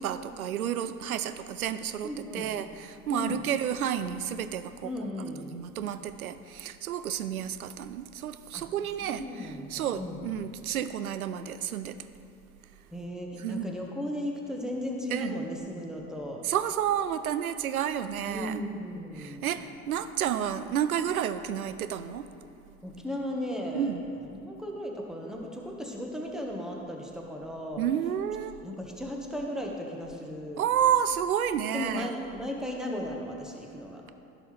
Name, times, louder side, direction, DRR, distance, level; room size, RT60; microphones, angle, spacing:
voice 1, 0.0-5.1 5.5-12.0 13.4-13.7 15.1-15.4 16.4-18.6 19.2-22.3 23.7-24.0 27.8-28.6 30.6-32.1, right 9 dB, 75° right, 12 dB, 0.5 m, -30 dB
voice 2, 2.0-2.5 3.1-3.4 4.8-5.6 8.5-8.7 9.0-10.2 12.9-16.5 18.3-19.6 22.8-23.9 24.3-27.8 28.6-30.6 31.7-34.1, left 1 dB, ahead, 0 dB, 1.3 m, -36 dB
15.5 x 6.1 x 3.3 m, 2.9 s
figure-of-eight pair, 65°, 43 cm